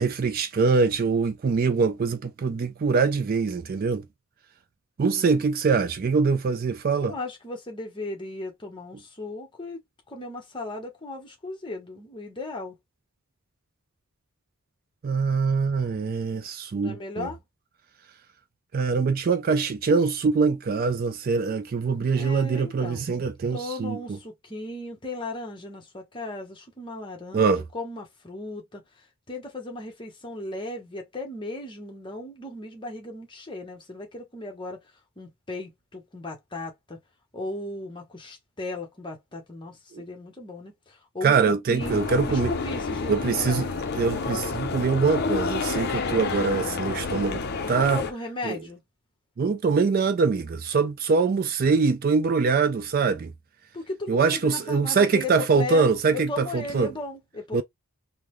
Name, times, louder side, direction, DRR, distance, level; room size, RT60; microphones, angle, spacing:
voice 1, 0.0-4.1 5.0-7.2 15.0-17.3 18.7-24.2 27.3-27.6 39.9-40.0 41.2-42.5 43.1-48.0 48.4-48.6 49.4-53.3 54.1-56.9 57.5-57.6, right 5 dB, 40° right, 0.3 m, -23 dB
voice 2, 7.1-9.8 10.1-12.7 16.7-17.4 22.1-23.1 23.5-28.8 29.3-34.8 35.2-37.0 37.3-42.0 42.3-43.8 47.7-48.8 53.7-55.8 56.1-57.6, left 2 dB, 20° left, 1.0 m, -36 dB
sound 1, 41.8-48.1, left 4 dB, 45° left, 0.6 m, -29 dB
3.7 x 2.1 x 3.1 m
head